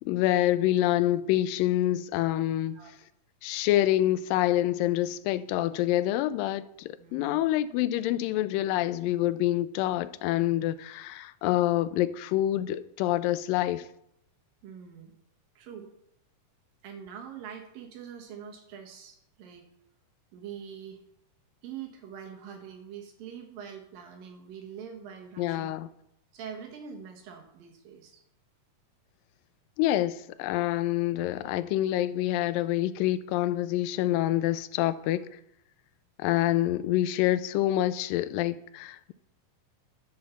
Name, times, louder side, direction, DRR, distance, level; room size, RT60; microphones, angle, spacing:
voice 1, 0.0-2.8 3.4-13.9 25.4-25.9 29.8-35.4 36.2-39.1, left 14 dB, 85° left, 2.2 m, -27 dB
voice 2, 7.0-7.5 14.6-15.1 15.6-15.9 16.8-19.7 20.3-21.0 21.6-25.7 26.3-28.2, right 8 dB, 80° right, 3.2 m, -44 dB
11.0 x 5.2 x 7.0 m
omnidirectional pair, 3.9 m